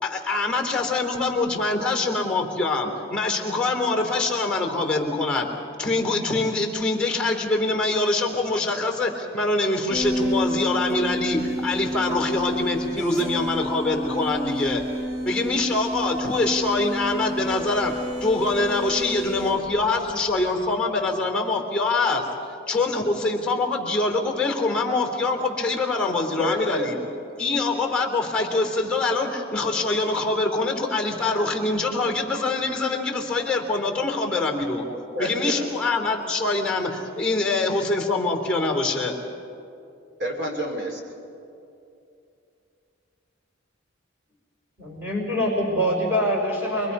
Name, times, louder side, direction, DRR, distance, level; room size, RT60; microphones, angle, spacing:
voice 1, 0.0-5.5 5.8-14.8 15.2-17.9 18.2-26.9 27.4-34.8 35.2-39.1, left 3 dB, 5° left, 2 dB, 3.3 m, -24 dB
sound 1, 9.9-20.3, equal, 80° right, 7.5 m, -30 dB
voice 2, 26.3-27.1 34.7-35.7 40.2-41.0, equal, 60° right, 2 dB, 3.1 m, -30 dB
voice 3, 44.8-46.9, equal, 10° right, -3 dB, 5.4 m, -24 dB
28.5 x 22.0 x 5.5 m, 2.7 s
head